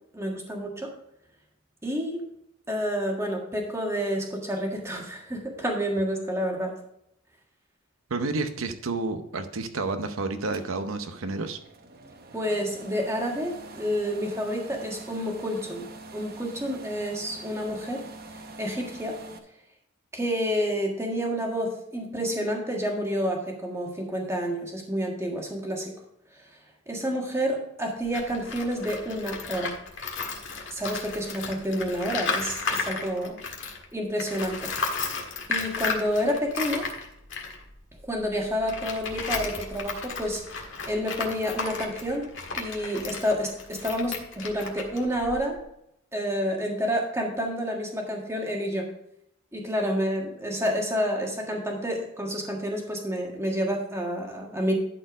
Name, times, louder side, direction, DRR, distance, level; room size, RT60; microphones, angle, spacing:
voice 1, 0.1-0.9 1.8-2.2 2.7-6.7 12.3-15.9 16.1-18.0 18.6-19.2 20.1-25.9 26.9-29.8 30.7-33.4 33.9-34.7 35.5-36.9 38.1-40.4 40.9-42.3 42.5-45.6 46.1-48.9 49.5-54.7, equal, 15° right, 0 dB, 1.6 m, -29 dB
voice 2, 8.1-11.6, right 3 dB, 85° right, 8 dB, 0.7 m, -30 dB
sound 1, 10.5-19.4, right 3 dB, 45° right, 0.8 m, -45 dB
Tools, 28.0-33.8 34.2-45.6, left 4 dB, 65° left, 1.6 m, -34 dB
11.5 x 4.4 x 5.0 m, 0.76 s
head